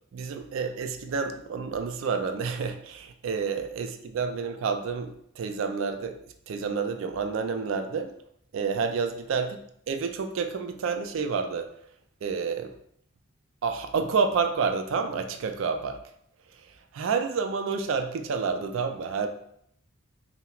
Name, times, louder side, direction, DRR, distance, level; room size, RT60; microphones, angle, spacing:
voice 1, 0.1-6.2 6.5-8.1 8.5-9.6 9.9-11.7 12.2-12.7 13.6-16.0 16.5-19.3, right 5 dB, 70° right, 7 dB, 0.3 m, -29 dB
5.6 x 2.0 x 2.4 m, 0.70 s
head